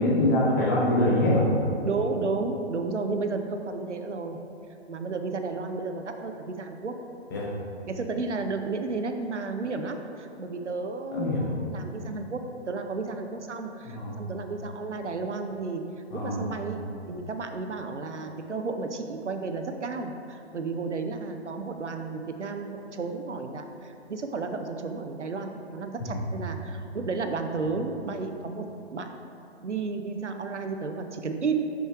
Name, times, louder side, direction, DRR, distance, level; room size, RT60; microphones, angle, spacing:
voice 1, 0.0-1.5 7.3-7.5 11.1-11.4 13.8-14.1 16.1-16.5 26.1-26.2, left 1 dB, 20° left, -4 dB, 0.6 m, -24 dB
voice 2, 1.8-4.4 4.9-6.9 7.9-12.4 12.7-15.8 16.1-16.8 17.1-29.1 29.6-31.6, right 4 dB, 90° right, 5 dB, 0.5 m, -32 dB
6.9 x 3.1 x 4.6 m, 2.7 s
figure-of-eight pair, 130°, 34 cm